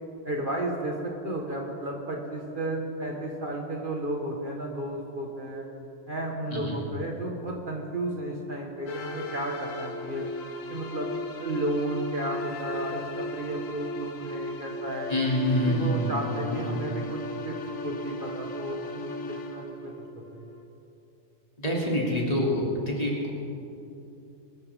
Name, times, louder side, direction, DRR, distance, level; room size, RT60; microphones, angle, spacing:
voice 1, 0.2-5.6 6.1-10.3 10.7-15.1 15.6-17.6 17.8-19.9 20.3-20.5, right 1 dB, 40° right, -1 dB, 1.6 m, -33 dB
sound 1, 8.9-20.7, left 1 dB, 85° left, 1.4 m, -36 dB
voice 2, 15.1-16.1 16.5-16.8 21.6-23.3, equal, 30° left, -4 dB, 3.0 m, -26 dB
23.0 x 13.5 x 3.6 m, 2.8 s
omnidirectional pair, 1.3 m